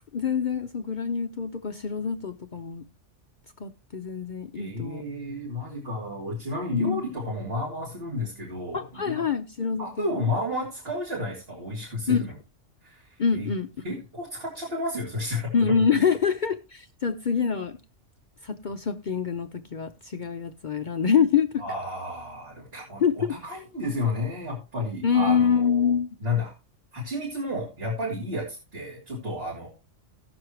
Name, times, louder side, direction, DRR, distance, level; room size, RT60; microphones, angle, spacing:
voice 1, 0.1-2.8 3.6-5.0 6.7-7.0 8.7-10.3 12.1-12.2 13.2-13.7 15.5-17.8 18.4-21.6 23.0-23.3 25.0-26.1, left 6 dB, 50° left, 0.6 m, -25 dB
voice 2, 4.5-9.2 9.8-12.3 12.8-13.5 13.8-15.5 21.6-25.9 26.2-26.5 26.9-28.5 28.7-29.7, left 2 dB, 55° right, 3.2 m, -32 dB
18.0 x 6.3 x 3.1 m
omnidirectional pair, 1.2 m